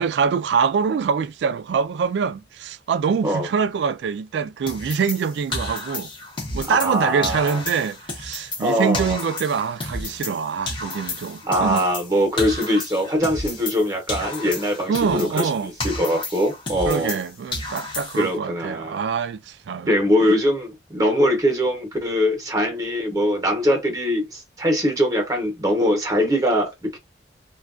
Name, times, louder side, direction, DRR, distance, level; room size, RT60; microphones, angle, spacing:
voice 1, 0.0-6.1 6.5-11.9 14.9-15.7 16.9-19.9 20.2-20.4, right 6 dB, 80° right, 0.3 m, -24 dB
sound 1, 4.7-7.0 7.2-10.4 10.7-13.8 14.1-17.2 17.5-18.4, left 2 dB, 30° left, 0.6 m, -32 dB
voice 2, 6.7-7.6 8.6-9.2 11.4-17.2 18.2-19.0 19.9-27.0, equal, 20° right, 0.8 m, -22 dB
3.3 x 2.2 x 2.4 m
head